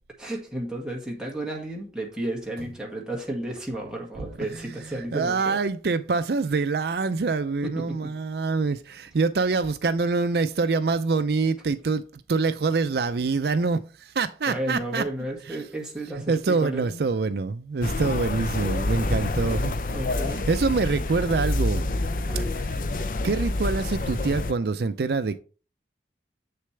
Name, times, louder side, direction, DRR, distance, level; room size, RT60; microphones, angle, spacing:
voice 1, 0.2-5.6 7.6-8.1 14.5-17.0 19.9-20.4 22.2-22.5, right 1 dB, 5° right, 2.0 m, -33 dB
voice 2, 4.2-15.0 15.5-15.6 16.3-19.7 20.5-21.9 22.5-22.8 23.2-25.4, right 4 dB, 65° right, 0.5 m, -25 dB
sound 1, 17.8-24.5, left 2 dB, 50° left, 0.5 m, -27 dB
7.6 x 6.6 x 3.3 m
head